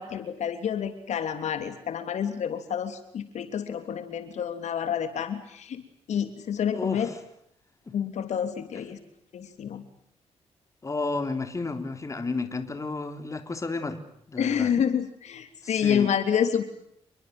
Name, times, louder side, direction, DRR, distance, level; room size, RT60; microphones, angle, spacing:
voice 1, 0.0-5.8 6.1-7.1 7.9-9.0 9.3-9.8 14.4-16.6, left 8 dB, 75° left, 9 dB, 3.2 m, -28 dB
voice 2, 6.7-7.1 10.8-14.0 14.3-14.7 15.6-16.1, left 3 dB, 25° left, 8 dB, 3.4 m, -32 dB
29.0 x 22.5 x 7.9 m, 0.72 s
cardioid pair, 95°, 12 cm